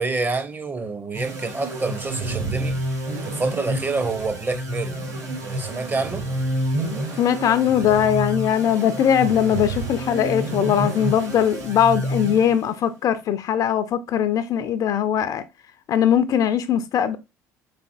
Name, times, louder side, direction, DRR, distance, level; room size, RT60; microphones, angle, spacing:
voice 1, 0.0-2.8 3.3-5.0 5.4-6.3, right 3 dB, 20° right, 0.6 m, -27 dB
sound 1, 1.1-12.9, right 1 dB, 70° right, 2.0 m, -29 dB
voice 2, 7.2-15.4 15.9-17.2, left 9 dB, 40° left, 0.3 m, -20 dB
3.7 x 3.4 x 2.3 m
figure-of-eight pair, 55°, 9 cm